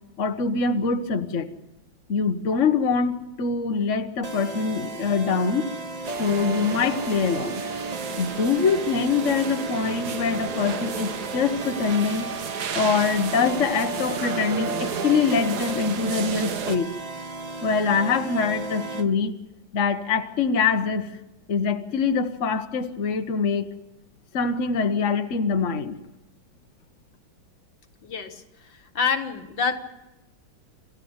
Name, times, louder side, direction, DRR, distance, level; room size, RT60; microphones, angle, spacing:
voice 1, 0.2-1.5 2.1-5.6 6.2-7.6 8.2-12.3 12.7-16.9 17.6-19.3 19.7-21.1 21.5-23.7 24.3-25.9, left 5 dB, 45° left, 7 dB, 1.3 m, -24 dB
sound 1, 4.2-19.1, right 2 dB, 25° right, 1.0 m, -35 dB
sound 2, 6.0-16.8, right 8 dB, 60° right, 1.5 m, -33 dB
voice 2, 28.0-29.8, left 6 dB, 70° left, 6 dB, 2.4 m, -27 dB
27.0 x 15.0 x 8.1 m, 0.98 s
omnidirectional pair, 2.1 m